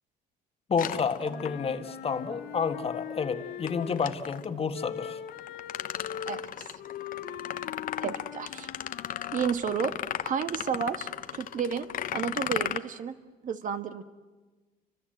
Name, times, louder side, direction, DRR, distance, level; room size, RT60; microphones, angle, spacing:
voice 1, 0.7-5.2, left 5 dB, 35° left, 8 dB, 1.6 m, -30 dB
sound 1, 0.8-1.9 3.7-4.5 5.3-12.8, left 11 dB, 55° left, 0.9 m, -36 dB
Wind instrument woodwind instrument, 1.3-4.2 4.7-9.6, left 10 dB, 75° left, 1.2 m, -41 dB
voice 2, 6.3-6.7 8.0-8.7 9.3-9.9 10.2-11.9 12.1-13.2 13.4-14.0, right 7 dB, 50° right, 9 dB, 1.6 m, -31 dB
29.5 x 25.0 x 7.9 m, 1.2 s
cardioid pair, 110°, 17 cm